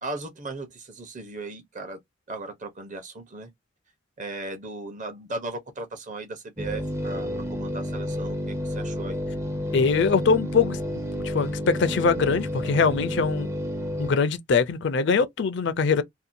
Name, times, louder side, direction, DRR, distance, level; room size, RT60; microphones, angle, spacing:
voice 1, 0.0-2.0 2.3-3.5 4.2-9.2, right 2 dB, 40° right, 0.7 m, -37 dB
sound 1, 6.6-14.1, left 1 dB, 15° right, 0.4 m, -30 dB
voice 2, 9.7-10.8 11.2-13.5 14.0-16.0, left 5 dB, 65° left, 0.4 m, -22 dB
2.6 x 2.2 x 2.5 m
head